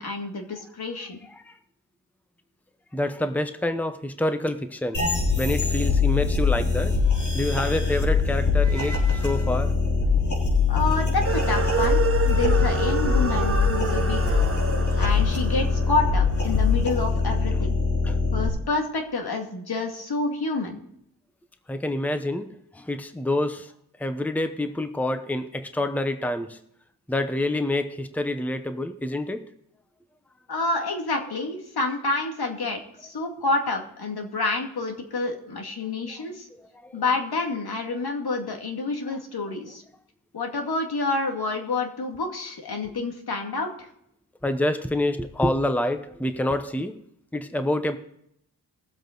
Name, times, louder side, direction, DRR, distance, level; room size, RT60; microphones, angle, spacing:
voice 1, 0.0-1.2 10.7-14.4 15.0-17.8 18.3-20.8 30.5-36.5 36.9-39.8 40.3-43.9, left 3 dB, 65° left, 3 dB, 2.3 m, -28 dB
voice 2, 1.2-1.5 2.9-5.0 5.4-7.0 7.3-9.7 17.5-17.6 18.0-18.2 21.7-23.7 24.0-26.6 27.1-29.4 36.8-37.0 44.4-46.9 47.3-48.0, left 1 dB, 5° left, 9 dB, 0.9 m, -27 dB
sound 1, 4.9-18.5, left 4 dB, 45° left, 4.1 m, -23 dB
sound 2, 11.2-16.7, right 5 dB, 35° right, 1.4 m, -29 dB
19.5 x 7.8 x 4.0 m, 0.74 s
cardioid pair, 60°, 40 cm